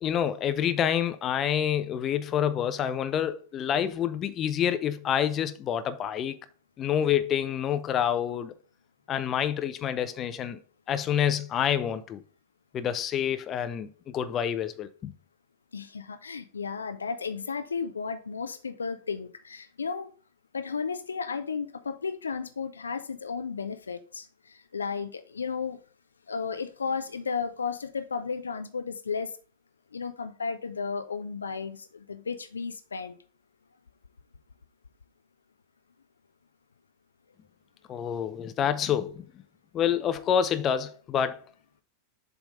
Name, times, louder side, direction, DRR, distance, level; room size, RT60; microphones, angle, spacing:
voice 1, 0.0-6.4 6.8-8.5 9.1-10.6 10.9-12.2 12.7-13.9 14.1-15.1 37.9-39.3 39.7-41.4, left 9 dB, 30° left, 0.6 m, -27 dB
voice 2, 15.7-20.1 20.5-25.8 26.3-29.3 29.9-33.1, left 5 dB, 75° left, 0.5 m, -34 dB
7.3 x 3.5 x 5.2 m
figure-of-eight pair, 90°, 0 cm